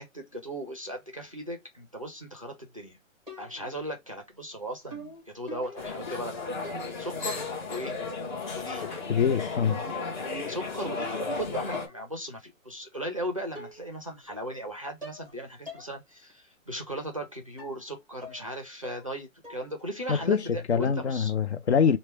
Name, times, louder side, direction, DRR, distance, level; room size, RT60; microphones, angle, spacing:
voice 1, 0.0-3.0 3.4-6.4 7.0-7.4 7.7-8.0 8.5-9.0 10.5-21.3, equal, 25° right, 0.4 m, -37 dB
sound 1, 3.3-3.8 4.9-7.1 7.4-8.0 8.9-9.3 9.5-11.3 11.7-12.1 13.0-13.1 13.5-14.0 14.3-14.7 15.0-15.3 15.7-15.9 16.3-16.4 17.6-17.8 18.2-18.5 18.8-19.2 19.4-19.8 20.1-20.4, equal, 5° left, 0.8 m, -45 dB
sound 2, 5.8-11.9, left 3 dB, 35° left, 1.0 m, -34 dB
voice 2, 9.1-9.8 20.1-20.4 20.7-22.0, left 7 dB, 55° left, 0.5 m, -24 dB
4.3 x 2.2 x 3.3 m
hypercardioid pair, 165°, 40 cm